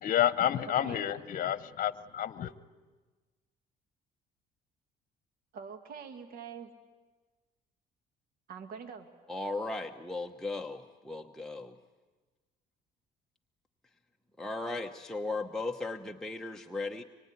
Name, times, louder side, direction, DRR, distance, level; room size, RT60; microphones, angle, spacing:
voice 1, 0.0-2.5, left 11 dB, 55° left, 14 dB, 1.1 m, -29 dB
voice 2, 0.6-1.1 5.5-6.7 8.5-9.1, right 6 dB, 60° right, 6 dB, 2.1 m, -44 dB
voice 3, 9.3-11.8 14.4-17.0, left 2 dB, 5° left, 1 dB, 1.0 m, -37 dB
24.5 x 23.5 x 9.7 m, 1.3 s
cardioid pair, 110°, 17 cm